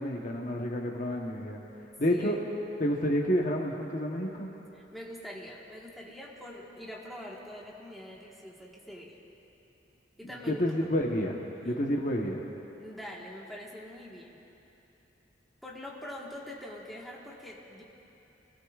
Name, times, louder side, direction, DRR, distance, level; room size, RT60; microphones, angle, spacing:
voice 1, 0.0-1.6 2.0-2.4 2.8-4.5 10.5-11.4 11.6-12.5, equal, 45° left, 0 dB, 1.0 m, -29 dB
voice 2, 4.7-9.1 10.2-10.9 12.8-14.4 15.6-17.8, left 1 dB, ahead, -4 dB, 1.4 m, -44 dB
23.0 x 17.0 x 2.4 m, 3.0 s
head